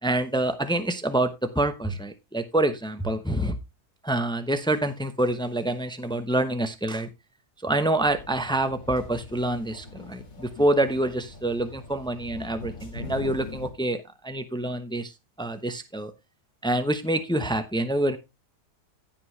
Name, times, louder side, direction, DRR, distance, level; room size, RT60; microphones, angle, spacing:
voice 1, 0.0-3.5 4.0-7.1 7.6-15.1 15.4-16.1 16.6-18.2, right 1 dB, 5° left, 9 dB, 0.5 m, -26 dB
sound 1, 8.0-13.7, left 3 dB, 60° left, 2.7 m, -41 dB
15.5 x 5.4 x 3.3 m, 0.23 s
omnidirectional pair, 1.7 m